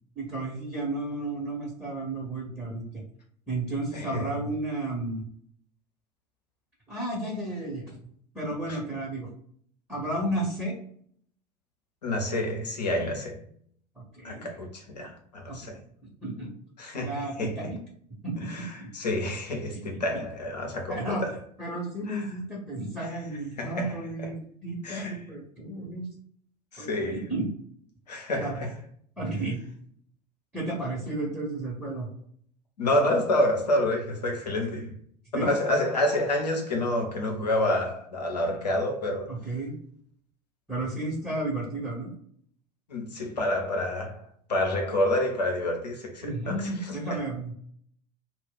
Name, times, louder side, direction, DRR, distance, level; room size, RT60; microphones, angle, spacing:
voice 1, 0.2-3.0 3.5-5.2 6.9-8.0 8.3-9.3 9.9-10.7 14.0-14.5 15.5-15.8 16.2-16.5 16.9-17.8 18.2-18.9 19.7-19.8 20.9-21.2 21.6-26.1 26.8-27.5 28.4-28.6 29.2-29.6 30.5-32.1 35.3-35.5 39.3-39.7 40.7-42.1 46.2-47.5, right 2 dB, 10° right, 1.0 m, -32 dB
voice 2, 3.9-4.3 8.7-8.8 12.0-13.4 14.2-15.8 16.8-17.6 18.4-21.4 22.1-22.3 23.0-23.2 23.6-24.0 24.8-25.1 26.7-27.3 28.1-28.7 32.8-35.0 35.3-39.3 42.9-44.2 44.5-47.2, left 1 dB, 75° left, 0.8 m, -28 dB
2.4 x 2.2 x 3.9 m
figure-of-eight pair, 70°, 21 cm